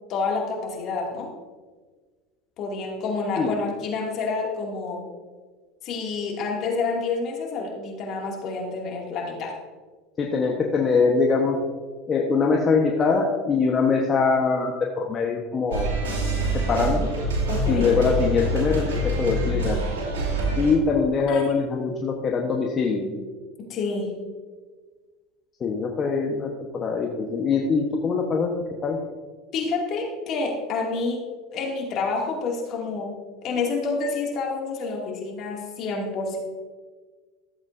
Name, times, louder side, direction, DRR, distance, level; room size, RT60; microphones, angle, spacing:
voice 1, 0.1-1.3 2.6-5.1 5.8-9.5 17.5-17.9 21.3-21.4 23.7-24.2 29.5-31.2 31.5-36.4, left 4 dB, 50° left, -1 dB, 2.4 m, -28 dB
voice 2, 10.2-11.6 12.1-15.9 16.5-17.1 17.7-19.8 20.6-23.1 25.6-28.5 28.8-29.0, left 4 dB, 35° left, 0 dB, 1.2 m, -23 dB
sound 1, 15.7-20.7, right 1 dB, 90° right, 2.7 m, -25 dB
14.5 x 8.0 x 2.7 m, 1.4 s
hypercardioid pair, 95°, 0 cm